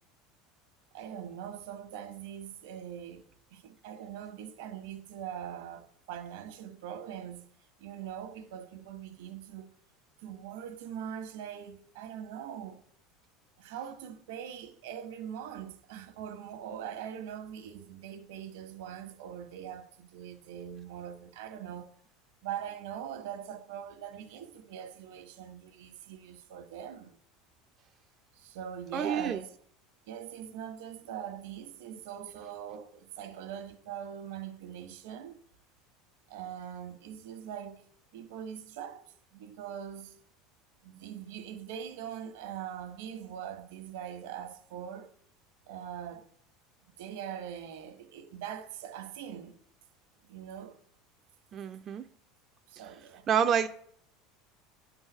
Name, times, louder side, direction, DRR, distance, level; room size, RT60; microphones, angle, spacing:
voice 1, 0.9-7.5 7.8-9.7 10.2-12.8 13.6-21.9 22.4-27.2 28.3-29.6 30.1-35.4 36.3-37.8 38.1-39.0 39.3-40.2 40.8-45.1 45.7-46.3 47.0-49.6 50.3-50.8 52.7-53.3, right 9 dB, 85° right, 1.1 m, -42 dB
voice 2, 28.9-29.4 51.5-52.0 53.3-53.7, right 8 dB, 35° right, 0.5 m, -28 dB
9.7 x 3.9 x 6.1 m
supercardioid pair, 125°, 0 cm